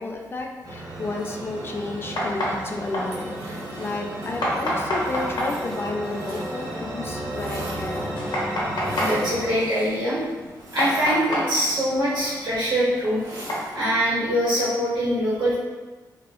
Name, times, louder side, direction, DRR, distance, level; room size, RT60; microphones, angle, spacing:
voice 1, 0.0-8.2, left 2 dB, 30° left, 1 dB, 0.3 m, -32 dB
sound 1, 0.6-9.5, right 1 dB, 55° right, 0.6 m, -33 dB
sound 2, 0.9-13.7, equal, 70° left, 0.8 m, -32 dB
sound 3, 3.0-6.8 7.1-8.2 8.8-9.4 10.5-11.7 13.2-14.0, right 1 dB, 70° right, 1.0 m, -41 dB
voice 2, 9.0-10.2 10.7-13.2 13.7-15.6, equal, 90° right, -9 dB, 1.3 m, -23 dB
2.9 x 2.2 x 2.9 m, 1.3 s
wide cardioid pair, 125°, 7 cm